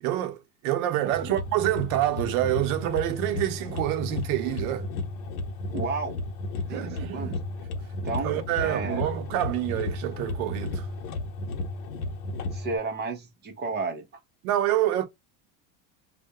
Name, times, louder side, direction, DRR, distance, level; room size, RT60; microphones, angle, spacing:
voice 1, 0.0-4.9 6.7-7.3 8.0-10.9 14.4-15.1, right 13 dB, 70° right, 0.7 m, -27 dB
sound 1, 1.1-12.8, left 2 dB, 70° left, 0.7 m, -34 dB
voice 2, 5.7-6.2 6.7-7.3 8.0-9.0 12.5-14.1, right 4 dB, 25° right, 0.6 m, -32 dB
2.3 x 2.1 x 2.7 m
supercardioid pair, 150°, 45 cm